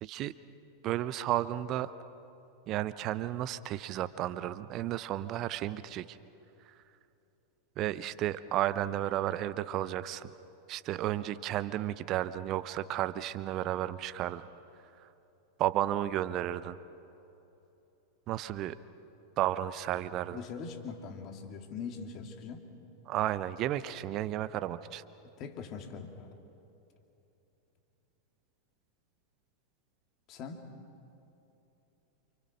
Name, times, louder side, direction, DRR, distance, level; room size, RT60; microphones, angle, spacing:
voice 1, 0.0-0.3 0.8-1.9 2.7-6.2 7.8-10.3 10.7-14.5 15.0-15.1 15.6-16.8 18.3-18.8 19.4-20.4 23.1-25.0, right 13 dB, 35° right, 15 dB, 0.8 m, -33 dB
voice 2, 20.3-22.7 25.4-26.4 30.3-30.7, left 5 dB, 35° left, 4 dB, 3.0 m, -42 dB
29.0 x 27.5 x 6.5 m, 3.0 s
figure-of-eight pair, 90°, 0 cm